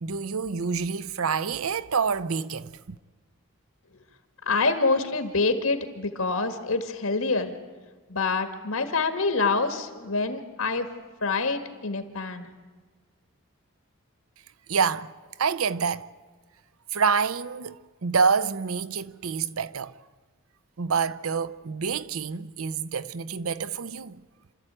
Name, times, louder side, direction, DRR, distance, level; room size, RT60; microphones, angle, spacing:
voice 1, 0.0-3.0 14.7-15.1 15.4-16.1 16.9-19.9 20.8-24.2, right 5 dB, 80° right, 0.7 m, -27 dB
voice 2, 4.5-7.5 8.1-10.9 11.2-12.5, left 3 dB, 85° left, 1.8 m, -26 dB
27.5 x 13.0 x 8.9 m
head